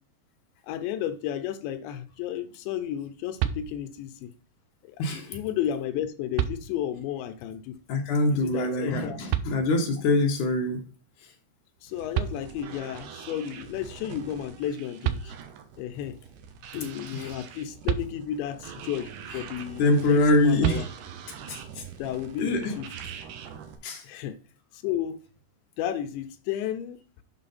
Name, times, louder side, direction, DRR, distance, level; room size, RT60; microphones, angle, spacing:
voice 1, 0.6-4.3 4.8-7.8 8.3-9.2 11.8-15.3 15.8-16.2 16.7-20.9 22.0-22.9 24.0-24.4 24.8-25.2 25.8-27.0, left 10 dB, 85° left, 3.0 m, -33 dB
sound 1, 3.4-4.2 5.7-5.8 6.4-7.1 9.3-10.1 11.8-11.9 12.1-13.0 14.7-14.8 15.0-15.8 17.9-18.7 20.6-21.4, right 11 dB, 90° right, 2.3 m, -31 dB
voice 2, 5.0-5.3 7.9-10.8 17.2-17.3 19.8-20.8 21.5-21.8 22.4-22.7 23.8-24.0, left 2 dB, 60° left, 2.2 m, -24 dB
sound 2, 11.9-23.8, right 7 dB, 75° right, 2.7 m, -44 dB
7.7 x 5.7 x 4.2 m
omnidirectional pair, 5.2 m